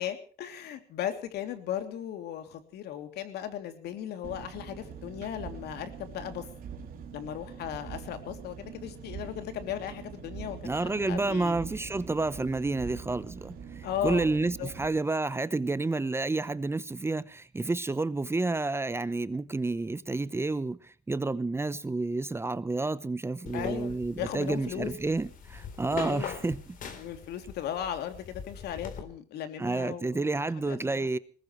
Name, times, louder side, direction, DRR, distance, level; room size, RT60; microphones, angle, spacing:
voice 1, 0.0-6.4 7.1-11.6 13.8-14.7 23.5-24.9 26.0-26.4 26.9-30.3 30.7-31.1, left 10 dB, 75° left, 3.0 m, -37 dB
Engine, 4.2-14.9, right 6 dB, 60° right, 3.3 m, -44 dB
voice 2, 10.6-26.6 29.6-31.2, right 3 dB, 15° right, 0.9 m, -30 dB
sound 1, 23.5-29.0, left 6 dB, 55° left, 3.9 m, -42 dB
21.5 x 19.5 x 3.2 m
cardioid pair, 110°, 17 cm